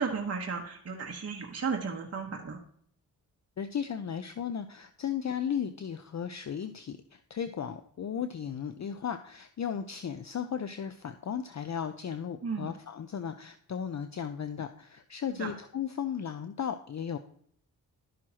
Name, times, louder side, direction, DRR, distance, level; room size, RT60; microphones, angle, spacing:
voice 1, 0.0-2.6 12.4-12.7 15.4-15.5, right 5 dB, 40° right, 1 dB, 1.2 m, -34 dB
voice 2, 3.6-17.2, left 8 dB, 45° left, 9 dB, 0.6 m, -35 dB
12.0 x 6.2 x 2.9 m, 0.63 s
cardioid pair, 70°, 39 cm